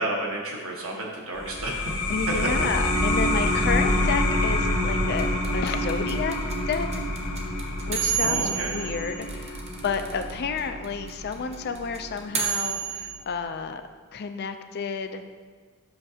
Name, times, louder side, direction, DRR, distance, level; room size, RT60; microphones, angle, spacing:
voice 1, 0.0-1.9 8.2-8.7, right 1 dB, 65° right, -1 dB, 1.2 m, -31 dB
sound 1, 1.3-12.5, left 1 dB, 90° left, 1.2 m, -27 dB
voice 2, 2.1-6.4 6.7-7.1 7.9-13.8 14.1-15.2, left 5 dB, 45° left, 8 dB, 0.4 m, -31 dB
sound 2, 5.2-10.3 10.6-10.7 10.8-13.1, right 7 dB, 30° right, 0.7 m, -29 dB
7.7 x 5.9 x 2.8 m, 1.6 s
head